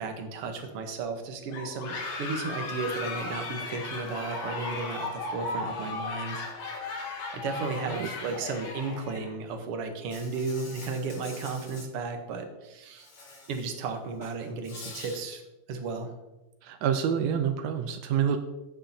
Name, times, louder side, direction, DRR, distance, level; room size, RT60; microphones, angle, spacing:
voice 1, 0.0-13.1 13.5-15.4 15.7-16.1, right 4 dB, 65° right, 5 dB, 1.5 m, -34 dB
sound 1, 1.5-9.3, left 3 dB, 80° left, 3.1 m, -36 dB
Insect, 10.1-11.9 13.0-13.8 14.1-15.2, left 3 dB, 50° left, 2.7 m, -46 dB
voice 2, 16.6-18.4, right 8 dB, 90° right, 7 dB, 1.5 m, -27 dB
16.0 x 6.4 x 2.8 m, 1.0 s
omnidirectional pair, 3.8 m